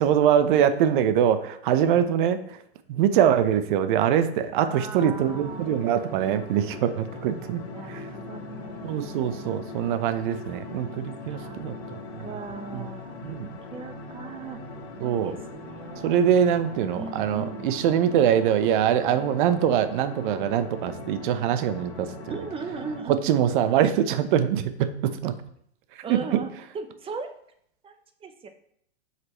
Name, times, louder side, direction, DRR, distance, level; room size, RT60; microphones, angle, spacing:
voice 1, 0.0-2.4 2.9-7.6 7.9-8.1 8.8-12.0 12.7-12.8 13.2-13.5 15.0-15.3 16.0-22.1 23.1-25.3 26.1-26.4, right 9 dB, 50° right, 11 dB, 0.8 m, -23 dB
voice 2, 0.6-1.1 4.6-6.0 7.7-9.6 11.3-11.6 12.2-14.6 14.9-16.2 16.9-17.7 22.3-23.3 26.0-27.3 27.8-28.5, right 5 dB, 15° right, 8 dB, 0.8 m, -38 dB
sound 1, 5.1-23.0, left 3 dB, 70° left, 1.6 m, -40 dB
7.5 x 5.9 x 3.0 m, 0.68 s
hypercardioid pair, 110°, 33 cm